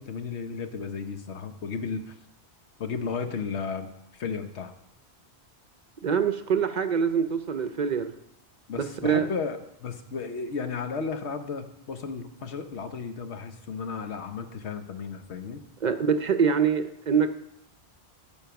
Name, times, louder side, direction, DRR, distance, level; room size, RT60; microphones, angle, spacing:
voice 1, 0.0-2.1 2.8-4.7 8.7-15.6, left 5 dB, 90° left, 7 dB, 1.2 m, -34 dB
voice 2, 6.0-8.1 8.8-9.3 15.8-17.3, right 6 dB, 50° right, 10 dB, 0.6 m, -24 dB
14.0 x 5.2 x 5.8 m, 0.81 s
omnidirectional pair, 1.1 m